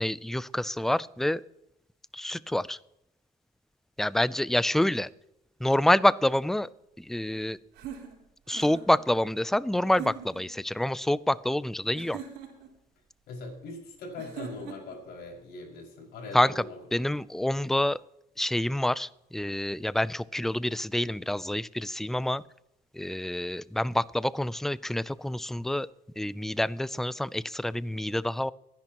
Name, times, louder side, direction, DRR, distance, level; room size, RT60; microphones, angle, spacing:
voice 1, 0.0-1.4 2.1-2.8 4.0-5.1 5.6-6.7 7.0-7.6 8.5-12.2 16.3-16.6 16.9-18.0 18.4-22.4 22.9-25.9 26.2-28.5, left 1 dB, ahead, 19 dB, 0.4 m, -27 dB
sound 1, 7.7-9.0 9.9-10.5 11.9-12.7 14.2-15.0, right 7 dB, 90° right, 4.0 m, -42 dB
voice 2, 13.3-16.8, left 3 dB, 70° left, -1 dB, 5.7 m, -41 dB
24.0 x 10.5 x 3.0 m, 0.86 s
cardioid pair, 110°, 17 cm